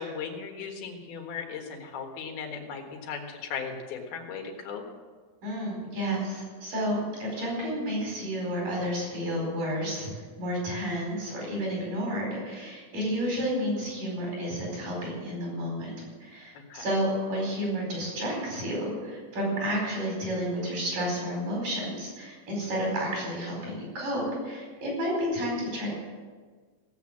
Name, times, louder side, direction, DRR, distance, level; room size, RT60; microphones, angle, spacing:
voice 1, 0.0-4.8 16.6-16.9, left 6 dB, 80° left, 2 dB, 3.5 m, -37 dB
voice 2, 5.4-10.1 10.4-25.9, equal, 60° right, -2 dB, 6.4 m, -31 dB
17.0 x 8.2 x 7.3 m, 1.5 s
omnidirectional pair, 4.3 m